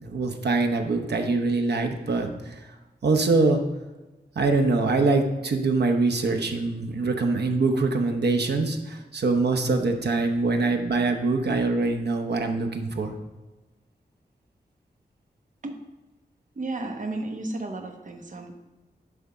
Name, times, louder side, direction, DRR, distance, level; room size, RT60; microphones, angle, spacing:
voice 1, 0.0-2.7 3.0-3.6 4.4-13.1, right 3 dB, 85° right, 5 dB, 0.9 m, -24 dB
voice 2, 16.6-18.5, right 2 dB, 50° right, 4 dB, 1.1 m, -33 dB
10.5 x 3.6 x 5.4 m, 1.1 s
wide cardioid pair, 115°, 17 cm